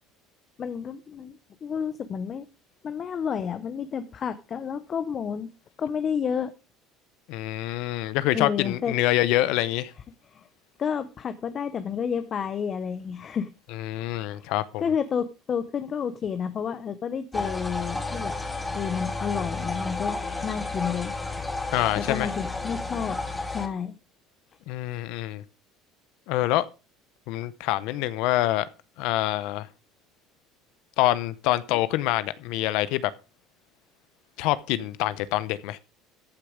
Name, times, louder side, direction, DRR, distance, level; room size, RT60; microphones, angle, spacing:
voice 1, 0.6-2.5 2.8-5.5 5.8-6.5 8.3-8.9 10.3-10.5 10.8-13.5 14.0-14.5 14.8-18.3 18.7-21.1 22.0-23.2 23.5-23.9, left 7 dB, 35° left, 0.8 m, -30 dB
voice 2, 7.3-9.9 13.7-14.8 21.7-22.3 24.7-25.4 26.3-26.7 27.3-28.7 29.0-29.7 31.0-33.1 34.4-35.8, left 15 dB, 70° left, 0.8 m, -26 dB
sound 1, 17.3-23.7, left 3 dB, 10° left, 2.0 m, -31 dB
14.5 x 6.6 x 5.1 m
cardioid pair, 140°, 0 cm